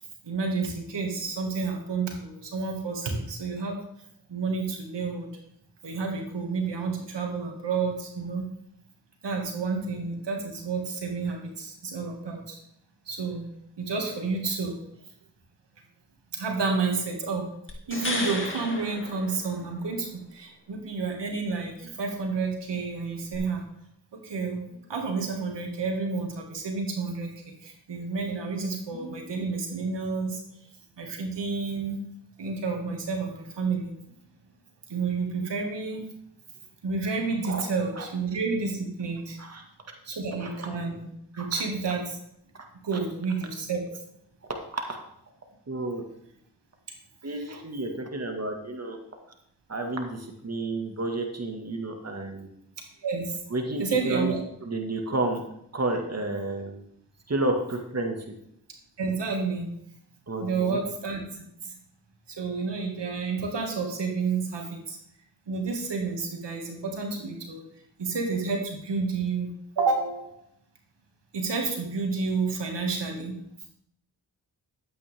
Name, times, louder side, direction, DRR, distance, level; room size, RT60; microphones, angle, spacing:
voice 1, 0.2-3.8 4.3-5.3 5.8-8.5 9.2-12.6 13.1-13.5 13.8-14.8 16.3-17.5 17.9-23.6 24.1-27.3 27.6-30.4 31.0-32.0 32.4-33.9 34.9-36.1 36.8-39.4 40.0-41.1 41.4-42.2 42.8-43.8 53.0-53.4 53.8-54.4 59.0-59.7 60.4-61.2 61.6-61.7 62.3-65.0 65.5-67.6 68.0-69.5 69.8-70.4 71.3-73.4, right 4 dB, 75° right, 2 dB, 2.2 m, -30 dB
sound 1, 17.7-20.0 23.3-23.4, left 2 dB, 30° left, 2.4 m, -34 dB
voice 2, 40.4-40.7 41.3-41.5 42.9-43.0 44.5-45.0 45.7-46.0 47.2-49.0 49.7-52.5 53.5-54.3 54.6-55.4 55.7-56.8 57.3-58.2 60.3-60.8, right 2 dB, 35° right, 3 dB, 2.0 m, -31 dB
12.0 x 8.9 x 3.6 m, 0.74 s
supercardioid pair, 40°, 43 cm